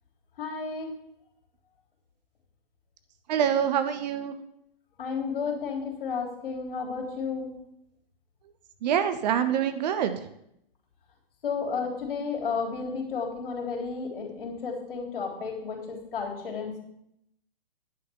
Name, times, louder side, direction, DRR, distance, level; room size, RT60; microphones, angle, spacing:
voice 1, 0.4-0.9 5.0-7.5 11.4-16.8, left 5 dB, 65° left, -1 dB, 3.7 m, -32 dB
voice 2, 3.3-4.4 8.8-10.1, right 9 dB, 45° right, 10 dB, 1.0 m, -25 dB
9.9 x 5.9 x 7.0 m, 0.75 s
hypercardioid pair, 125°, 29 cm